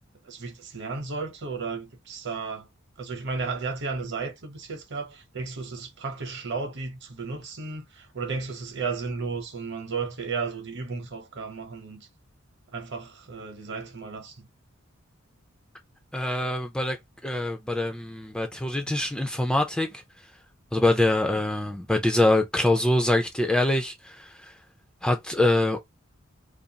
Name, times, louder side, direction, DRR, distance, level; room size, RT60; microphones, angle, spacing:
voice 1, 0.2-2.7 3.0-12.1 12.7-14.5, right 4 dB, 60° right, 0.9 m, -34 dB
voice 2, 16.1-17.0 17.2-20.0 20.7-24.5 25.0-25.8, left 1 dB, 5° left, 0.3 m, -24 dB
2.5 x 2.3 x 2.6 m
head